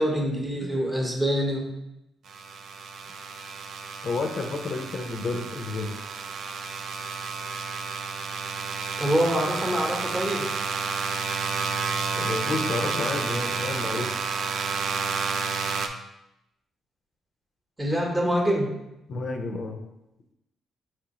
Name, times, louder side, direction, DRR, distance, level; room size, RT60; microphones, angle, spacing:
voice 1, 0.0-1.7 9.0-10.5 17.8-18.8, equal, 15° right, 0 dB, 0.9 m, -25 dB
sound 1, 2.3-15.9, right 5 dB, 65° right, 0.4 m, -31 dB
voice 2, 4.0-5.9 12.2-14.1 19.1-19.8, left 3 dB, 55° left, 3 dB, 0.5 m, -31 dB
4.8 x 3.1 x 2.9 m, 0.89 s
cardioid pair, 90°, 0 cm